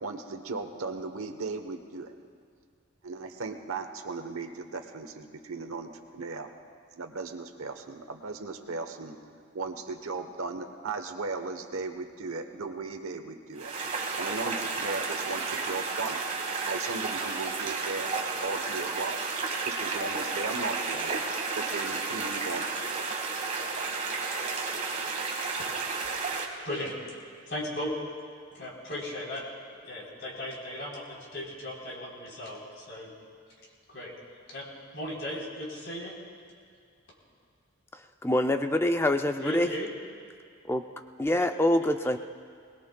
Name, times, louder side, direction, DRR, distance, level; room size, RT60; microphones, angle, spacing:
voice 1, 0.0-2.1 3.0-6.5 6.9-9.2 9.5-13.7 14.2-16.2 16.6-19.3 19.6-21.2 21.6-22.7, right 3 dB, 85° right, 6 dB, 1.1 m, -36 dB
sound 1, 13.6-26.4, right 4 dB, 35° right, 1.4 m, -32 dB
voice 2, 27.5-27.9 28.5-29.4 29.8-33.1 33.9-34.1 34.5-34.7 34.9-36.2 39.4-39.9, left 1 dB, 55° left, -4 dB, 3.8 m, -36 dB
voice 3, 37.9-39.7 40.7-40.8 41.2-42.2, left 1 dB, 10° left, 7 dB, 0.4 m, -25 dB
21.5 x 20.0 x 2.3 m, 2.2 s
head